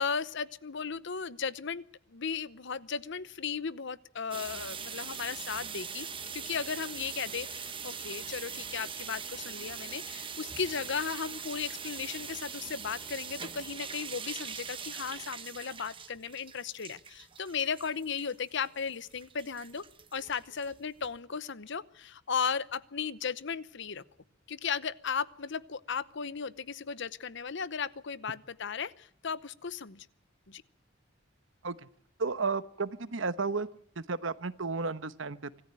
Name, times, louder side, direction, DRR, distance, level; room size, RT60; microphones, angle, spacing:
voice 1, 0.0-1.8 2.1-6.1 6.3-19.8 20.1-24.0 24.5-30.1 30.5-30.6, left 6 dB, 65° left, 17 dB, 0.9 m, -36 dB
sound 1, 4.3-21.2, right 6 dB, 25° right, 1.4 m, -42 dB
voice 2, 32.2-33.7 34.0-35.5, right 4 dB, 75° right, 14 dB, 1.1 m, -33 dB
25.5 x 14.0 x 8.9 m, 0.67 s
head